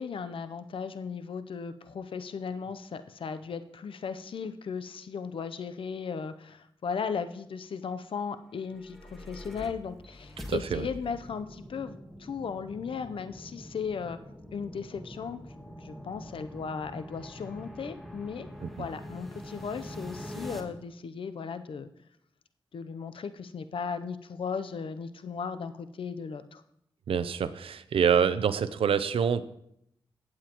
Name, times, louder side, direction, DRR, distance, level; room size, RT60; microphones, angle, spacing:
voice 1, 0.0-14.2 14.5-15.4 15.8-18.5 18.8-21.9 22.7-26.6, left 6 dB, 70° left, 11 dB, 0.7 m, -36 dB
sound 1, 8.6-20.6, equal, ahead, 1.6 m, -44 dB
voice 2, 10.5-10.9 18.6-18.9 27.1-29.4, right 7 dB, 80° right, 13 dB, 0.6 m, -26 dB
17.5 x 7.4 x 3.0 m, 0.74 s
cardioid pair, 60°, 9 cm